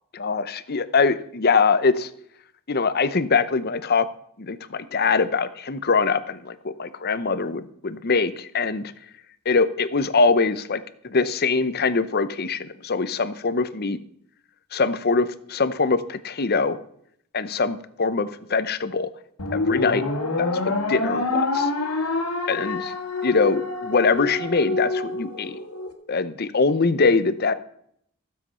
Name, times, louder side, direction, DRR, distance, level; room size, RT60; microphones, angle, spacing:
voice 1, 0.1-2.1 2.7-4.1 4.4-8.9 9.5-14.0 14.7-16.8 17.3-19.1 19.5-20.0 20.4-21.7 22.5-22.9 23.2-25.6 26.1-27.5, left 4 dB, 45° left, 13 dB, 0.7 m, -23 dB
sound 1, 19.4-25.9, left 3 dB, 85° left, 1.9 m, -26 dB
15.5 x 7.7 x 5.6 m, 0.69 s
head